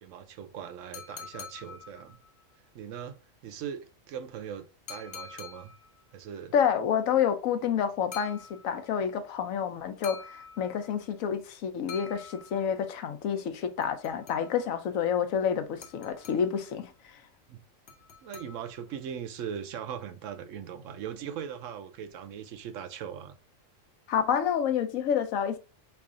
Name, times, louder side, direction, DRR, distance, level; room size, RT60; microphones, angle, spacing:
voice 1, 0.0-2.2 2.7-5.7 6.1-6.5 17.5-17.6 18.2-23.3, right 8 dB, 75° right, 0.9 m, -40 dB
sound 1, 0.9-2.4 4.9-6.0 8.1-9.0 10.0-11.1 11.9-12.9 13.8-14.8 15.8-16.7 17.9-19.0, left 6 dB, 55° left, 0.9 m, -46 dB
voice 2, 6.5-17.2 24.1-25.6, left 8 dB, 90° left, 1.1 m, -29 dB
3.3 x 2.4 x 3.6 m
omnidirectional pair, 1.3 m